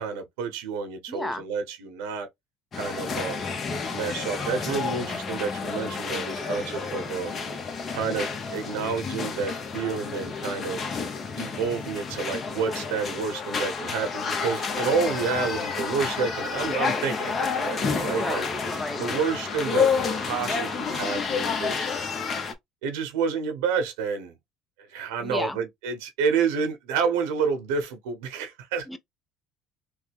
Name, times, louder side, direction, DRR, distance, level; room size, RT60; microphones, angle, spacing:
voice 1, 0.0-2.3 2.7-3.4 3.9-7.3 7.9-10.8 11.4-18.4 19.0-21.9 22.8-24.4 24.9-28.9, right 5 dB, 90° right, 1.1 m, -29 dB
voice 2, 1.1-1.4 18.1-19.1 25.2-25.6 28.9-29.0, left 1 dB, 10° left, 0.6 m, -33 dB
sound 1, 2.7-22.5, left 5 dB, 40° left, 0.8 m, -30 dB
3.4 x 2.1 x 3.4 m
supercardioid pair, 95°, 0 cm